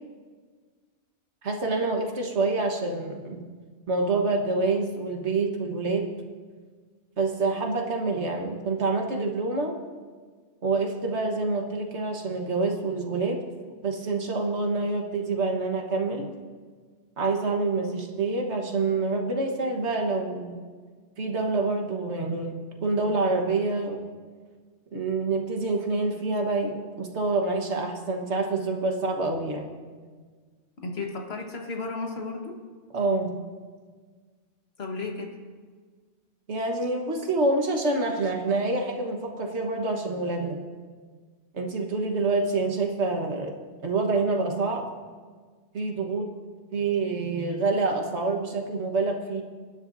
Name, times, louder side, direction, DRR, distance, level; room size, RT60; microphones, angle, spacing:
voice 1, 1.4-3.4 3.9-6.1 7.2-9.7 10.6-13.4 13.8-16.3 17.2-20.6 21.2-24.0 24.9-29.7 32.9-33.4 36.5-40.6 41.5-43.5 43.8-44.8 45.7-46.3 46.7-49.4, right 3 dB, 70° right, 2 dB, 1.7 m, -27 dB
voice 2, 30.8-32.6 34.8-35.3, left 3 dB, 60° left, 1 dB, 1.7 m, -33 dB
24.0 x 10.5 x 2.7 m, 1.5 s
omnidirectional pair, 1.2 m